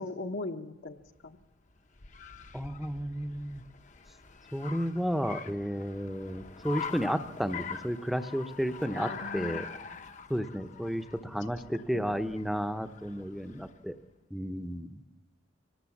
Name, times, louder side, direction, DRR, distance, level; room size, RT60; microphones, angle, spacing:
voice 1, 0.0-1.4 8.9-9.7 11.4-11.5 11.7-12.2, left 2 dB, 65° left, 3 dB, 1.0 m, -39 dB
Car, 1.0-13.9, left 6 dB, 35° left, 0.7 m, -44 dB
voice 2, 2.5-3.6 4.5-9.7 10.3-13.9 14.3-15.0, equal, ahead, 9 dB, 0.7 m, -32 dB
24.5 x 18.5 x 7.2 m, 1.1 s
head